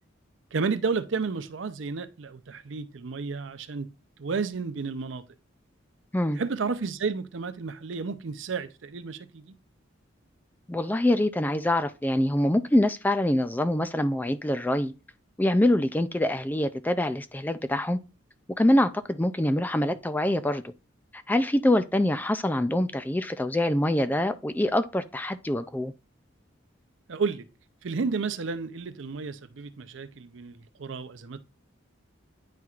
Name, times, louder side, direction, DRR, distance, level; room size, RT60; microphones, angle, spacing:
voice 1, 0.5-3.9 4.2-5.3 6.3-9.5 27.1-27.5 27.8-31.4, right 4 dB, 70° right, 0.6 m, -32 dB
voice 2, 10.7-14.9 15.4-18.0 18.6-20.7 21.1-25.9, left 1 dB, 10° left, 0.3 m, -25 dB
9.4 x 4.5 x 2.4 m
head